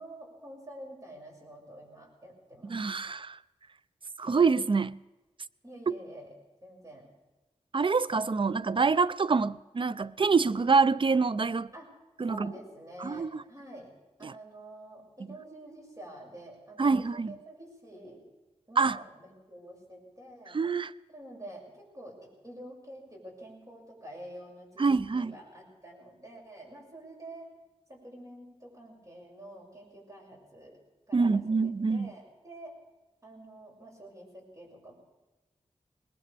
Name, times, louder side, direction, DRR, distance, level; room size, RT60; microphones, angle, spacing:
voice 1, 0.0-2.8 5.6-6.3 6.6-7.1 11.7-11.9 12.3-13.9 14.2-18.3 18.7-20.6 21.1-24.9 25.1-27.5 27.9-30.8 31.1-32.7 33.2-34.9, right 1 dB, 25° right, 6.3 m, -48 dB
voice 2, 2.6-3.4 4.2-5.0 5.9-6.0 7.7-11.7 12.2-12.5 13.0-13.4 14.2-14.4 16.8-17.4 18.8-19.0 20.5-20.9 24.8-25.4 31.1-32.1, right 4 dB, 45° right, 0.4 m, -26 dB
20.5 x 19.5 x 3.4 m
cardioid pair, 45°, 12 cm